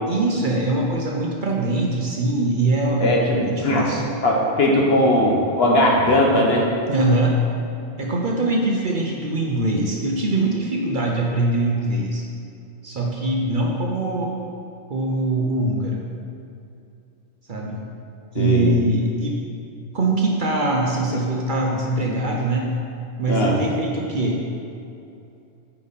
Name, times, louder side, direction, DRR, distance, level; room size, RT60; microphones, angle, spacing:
voice 1, 0.1-3.2 3.5-4.1 6.9-7.4 8.0-12.3 12.8-14.4 14.9-16.0 17.5-17.8 18.3-19.4 19.9-22.7 23.2-24.4, right 2 dB, 45° right, -1 dB, 0.8 m, -22 dB
voice 2, 3.0-3.8 4.2-6.7 18.3-18.7 23.3-23.5, left 1 dB, 55° left, -2 dB, 1.3 m, -18 dB
8.5 x 5.4 x 4.1 m, 2.7 s
omnidirectional pair, 1.2 m